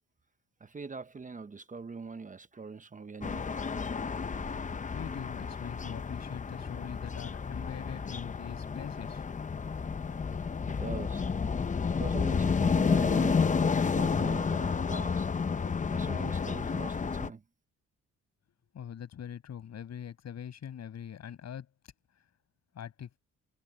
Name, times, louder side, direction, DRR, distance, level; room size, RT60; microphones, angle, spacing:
voice 1, 0.6-3.5 10.6-11.2 11.9-15.3 15.9-17.4, right 4 dB, 25° right, 1.1 m, -42 dB
sound 1, 3.2-17.3, left 5 dB, 25° left, 0.8 m, -31 dB
voice 2, 4.9-9.2 18.7-21.7 22.7-23.2, left 9 dB, 60° left, 6.8 m, -43 dB
cardioid pair, 90°, 30 cm